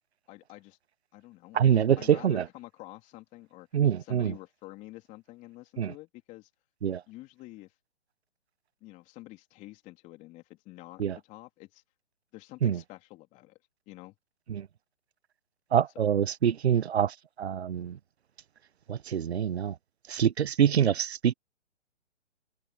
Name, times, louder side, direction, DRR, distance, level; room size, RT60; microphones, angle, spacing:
voice 1, 0.3-0.8 1.1-3.7 4.0-6.5 7.1-7.7 8.8-11.8 12.3-13.6 13.9-14.1 15.9-16.0, left 19 dB, 20° left, 3.3 m, -48 dB
voice 2, 1.5-2.4 3.7-4.3 5.8-5.9 6.8-7.0 11.0-11.2 12.6-12.8 14.5-14.7 15.7-18.0 18.9-19.7 20.1-21.3, right 9 dB, 65° right, 1.0 m, -25 dB
hypercardioid pair, 145°, 35 cm